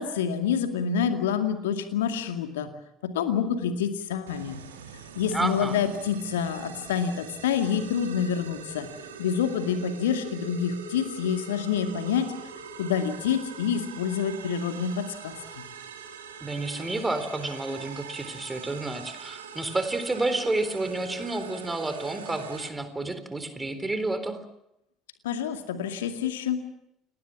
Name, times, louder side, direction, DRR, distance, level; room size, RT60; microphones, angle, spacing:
voice 1, 0.0-2.7 3.0-4.6 5.2-8.9 9.2-12.3 12.8-15.4 25.2-26.6, left 7 dB, 70° left, 7 dB, 2.2 m, -27 dB
sound 1, 4.3-22.7, right 6 dB, 75° right, 2.4 m, -43 dB
voice 2, 5.3-5.8 16.4-24.4, right 2 dB, 15° right, 10 dB, 4.0 m, -30 dB
30.0 x 19.5 x 7.4 m, 0.81 s
figure-of-eight pair, 60°, 0 cm